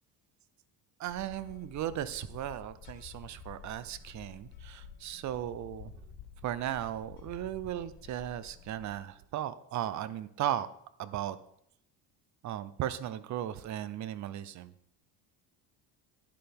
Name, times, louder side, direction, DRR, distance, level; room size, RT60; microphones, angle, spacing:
sound 1, 1.0-9.0, left 8 dB, 85° left, 1.9 m, -51 dB
voice 1, 1.0-5.9 6.4-10.7 11.0-11.4 12.4-14.7, right 11 dB, 45° right, 15 dB, 0.6 m, -36 dB
11.5 x 10.0 x 3.5 m, 0.70 s
cardioid pair, 130°, 40 cm